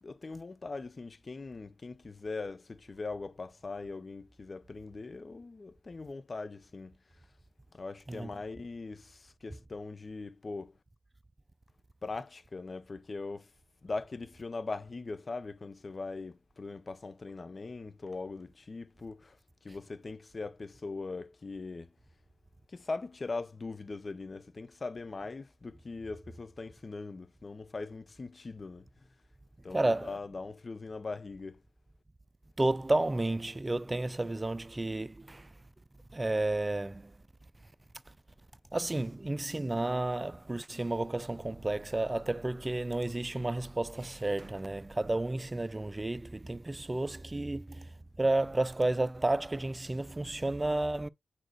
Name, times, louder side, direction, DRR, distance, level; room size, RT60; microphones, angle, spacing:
voice 1, 0.0-7.0 7.7-10.7 12.0-13.5 13.8-19.4 19.6-21.9 22.7-28.9 29.6-31.6, left 3 dB, 50° left, 0.8 m, -41 dB
voice 2, 29.7-30.1 32.6-35.5 36.1-37.1 38.7-47.9 48.2-51.1, right 2 dB, 30° right, 0.5 m, -31 dB
7.6 x 4.3 x 3.1 m
supercardioid pair, 40°, 0 cm